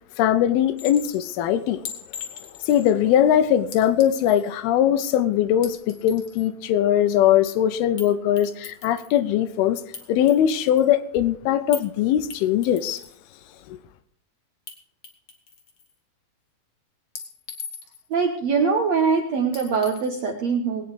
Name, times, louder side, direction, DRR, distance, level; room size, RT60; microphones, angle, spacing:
voice 1, 0.2-1.8 2.6-9.8 10.1-13.0 13.7-13.8, left 10 dB, 85° left, 2.6 m, -21 dB
Chink clink, 0.8-1.2 1.9-2.9 3.7-4.5 5.5-6.5 8.0-8.1 8.4-9.2 9.9-10.9 11.7-11.9 12.3-13.2 14.7-14.8 15.0-15.9 17.2-18.1 19.5-20.1, left 6 dB, 45° left, 1.9 m, -39 dB
voice 2, 18.1-20.8, right 5 dB, 70° right, 1.6 m, -22 dB
20.0 x 9.3 x 4.9 m
omnidirectional pair, 4.5 m